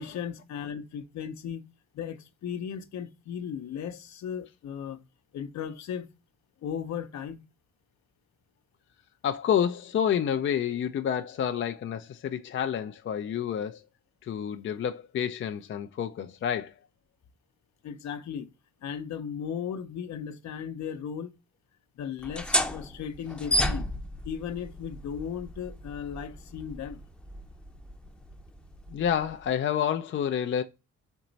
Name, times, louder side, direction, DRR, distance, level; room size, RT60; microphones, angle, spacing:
voice 1, 0.0-1.6 1.9-5.0 5.3-6.1 6.6-7.4 17.8-18.5 18.8-21.3 22.0-23.9 24.2-27.0, left 8 dB, 65° left, 0.8 m, -36 dB
voice 2, 9.2-13.8 14.2-16.7 28.9-30.6, left 9 dB, 40° left, 0.4 m, -29 dB
sound 1, 22.2-29.5, equal, 5° left, 0.7 m, -33 dB
4.4 x 3.0 x 3.9 m
cardioid pair, 90°, 30 cm